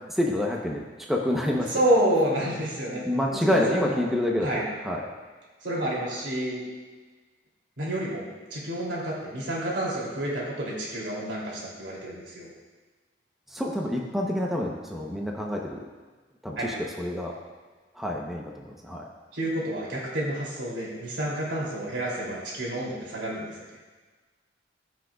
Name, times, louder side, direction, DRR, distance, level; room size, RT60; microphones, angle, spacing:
voice 1, 0.1-0.8 1.1-1.8 3.0-5.0 13.5-15.8 16.4-17.3 17.9-19.0, left 1 dB, ahead, -1 dB, 0.8 m, -27 dB
voice 2, 1.7-3.0 3.3-4.0 4.4-4.7 5.6-6.6 7.8-8.3 8.5-12.5 16.6-16.7 19.3-23.6, right 1 dB, 80° right, -4 dB, 2.9 m, -29 dB
17.5 x 6.2 x 2.4 m, 1.4 s
head